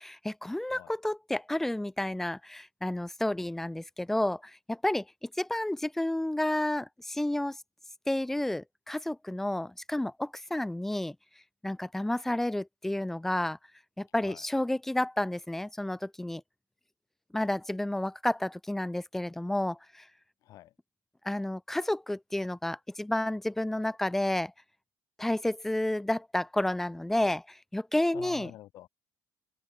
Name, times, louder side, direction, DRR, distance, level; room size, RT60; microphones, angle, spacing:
voice 1, 0.0-7.6 8.1-11.1 11.6-13.6 14.0-16.4 17.3-20.0 21.2-24.5 25.2-28.5, left 1 dB, 5° left, 1.3 m, -31 dB
voice 2, 20.4-20.7 28.1-28.9, left 14 dB, 50° left, 2.9 m, -47 dB
cardioid pair, 165°, 7 cm